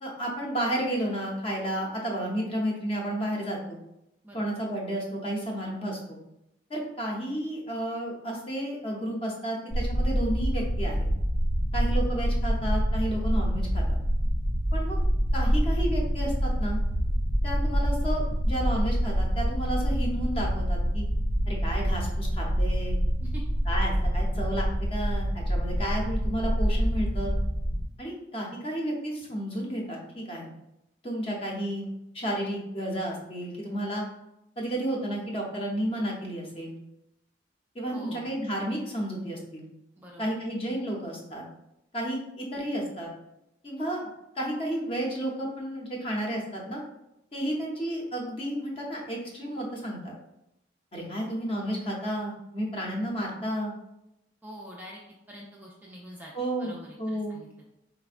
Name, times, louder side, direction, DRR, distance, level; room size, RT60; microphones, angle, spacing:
voice 1, 0.0-3.8 4.3-6.2 6.7-11.1 11.7-14.0 14.7-15.0 15.3-16.8 17.4-21.0 21.5-23.0 23.7-27.3 28.0-30.5 31.0-31.9 32.1-34.1 34.6-36.8 37.7-39.6 40.2-41.5 41.9-43.1 43.6-44.0 44.4-46.8 47.3-50.1 50.9-53.7 56.3-57.4, right 1 dB, 30° left, -1 dB, 0.6 m, -32 dB
sound 1, 9.7-27.8, equal, 80° left, 1.0 m, -26 dB
voice 2, 37.9-38.4 40.0-40.3 54.4-55.0 55.3-56.3 56.6-57.7, equal, 10° right, -3 dB, 0.3 m, -45 dB
4.1 x 2.1 x 2.4 m, 0.85 s
head